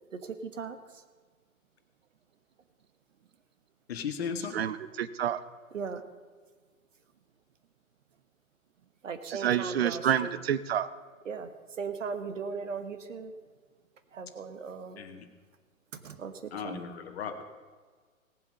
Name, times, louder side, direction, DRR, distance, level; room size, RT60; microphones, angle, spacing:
voice 1, 0.1-0.8 5.7-6.0 9.0-10.3 11.2-11.5 11.8-13.3 14.1-15.0 16.0-16.3 16.6-16.8, right 5 dB, 60° right, 9 dB, 1.4 m, -37 dB
voice 2, 3.9-4.6 15.0-15.3 16.5-17.4, left 6 dB, 45° left, 7 dB, 1.6 m, -36 dB
voice 3, 4.5-5.4 9.2-10.9, right 9 dB, 45° right, 14 dB, 0.7 m, -28 dB
18.0 x 7.5 x 5.4 m, 1.5 s
figure-of-eight pair, 120°, 42 cm